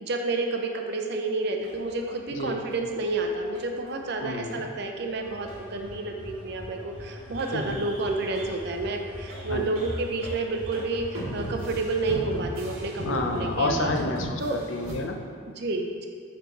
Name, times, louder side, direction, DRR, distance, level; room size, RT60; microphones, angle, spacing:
voice 1, 0.0-13.9 14.4-14.6 15.6-16.1, right 3 dB, 55° right, 3 dB, 0.6 m, -30 dB
sound 1, 1.6-4.1 4.5-4.6 5.0-5.1 5.3-5.6 5.8-5.9 6.1-6.9 7.2-15.0, right 1 dB, 80° right, 1.4 m, -38 dB
voice 2, 2.3-2.6 4.2-4.7 7.5-7.8 9.5-9.8 13.0-15.2, left 2 dB, 65° left, 3 dB, 0.6 m, -30 dB
sound 2, 5.2-13.9, equal, 5° right, 1.0 m, -42 dB
4.9 x 4.6 x 4.5 m, 2.2 s
head